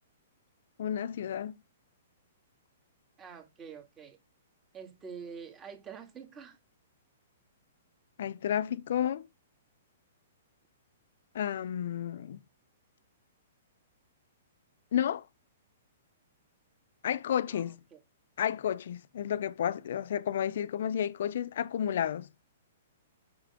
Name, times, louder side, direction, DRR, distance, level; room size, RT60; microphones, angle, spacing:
voice 1, 0.8-1.5 8.2-9.3 11.3-12.4 14.9-15.2 17.0-17.8 18.4-22.3, left 9 dB, 65° left, 0.5 m, -31 dB
voice 2, 3.2-4.2 4.7-6.6 17.5-17.6 17.9-18.0, right 6 dB, 20° right, 2.3 m, -46 dB
6.6 x 6.0 x 3.7 m
hypercardioid pair, 125°, 0 cm